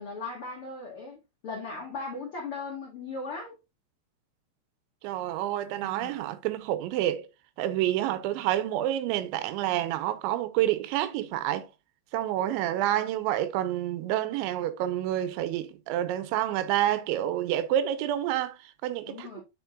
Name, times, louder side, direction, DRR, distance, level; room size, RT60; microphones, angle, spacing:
voice 1, 0.0-3.5 5.9-6.2 19.1-19.4, left 3 dB, 70° left, 1.3 m, -38 dB
voice 2, 5.0-7.3 7.6-11.7 12.1-19.4, right 12 dB, 90° right, 3.1 m, -28 dB
9.1 x 5.4 x 2.4 m
omnidirectional pair, 5.2 m